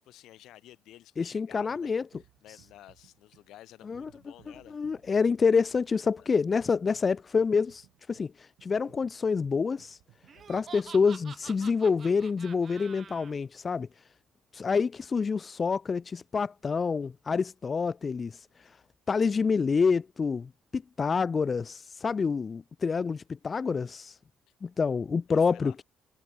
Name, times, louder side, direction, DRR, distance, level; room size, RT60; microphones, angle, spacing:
voice 1, 0.0-4.8 6.2-6.3 10.3-10.5 18.6-18.8 24.5-24.6 25.3-25.8, left 14 dB, 65° left, 6.1 m, -53 dB
voice 2, 1.2-2.0 3.9-4.1 4.7-10.0 10.5-13.9 14.5-18.8 19.1-24.2 24.6-25.8, left 5 dB, 25° left, 0.4 m, -27 dB
sound 1, 1.7-11.3, right 16 dB, 85° right, 4.0 m, -62 dB
Laughter, 10.3-13.3, right 7 dB, 30° right, 1.2 m, -47 dB
cardioid pair, 175°, 0 cm